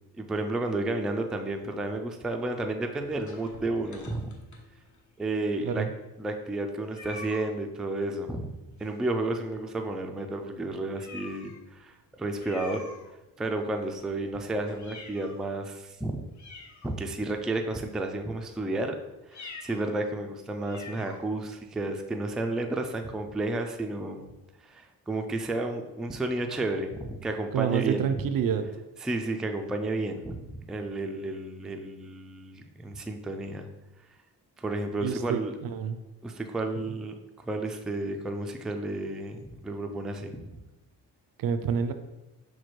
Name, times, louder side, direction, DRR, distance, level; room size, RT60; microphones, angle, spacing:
voice 1, 0.2-4.4 5.2-5.9 6.2-12.8 13.4-16.3 16.8-19.0 19.3-24.3 24.6-28.3 29.0-33.7 34.6-35.5 36.2-37.1 37.4-40.6, right 2 dB, ahead, 4 dB, 0.3 m, -32 dB
sound 1, 2.9-5.1 5.7-5.8 6.0-6.1 6.9-7.5 8.8-9.3 9.7-9.8 10.3-10.4 10.9-11.6 12.3-13.4 13.8-15.5 15.9-16.0 16.3-17.3 17.9-18.2 19.2-19.9 20.2-20.3 20.6-21.2, left 3 dB, 45° left, 0.9 m, -46 dB
voice 2, 27.5-28.6 35.0-36.0 41.4-41.9, right 8 dB, 60° right, 9 dB, 0.5 m, -28 dB
5.9 x 2.3 x 3.1 m, 1.0 s
supercardioid pair, 65°, 39 cm